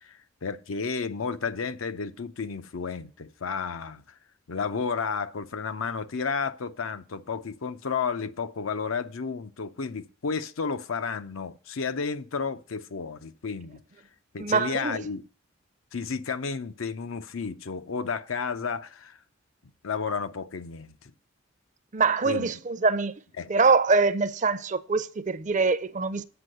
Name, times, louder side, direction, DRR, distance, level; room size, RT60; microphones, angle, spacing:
voice 1, 0.0-4.2 4.5-13.8 14.3-15.2 15.9-19.2 19.8-21.1 22.2-22.5 23.4-23.5, left 5 dB, 80° left, 0.6 m, -32 dB
voice 2, 14.4-15.0 21.9-23.2 23.5-26.2, right 4 dB, 35° right, 0.5 m, -24 dB
8.1 x 5.3 x 7.7 m
head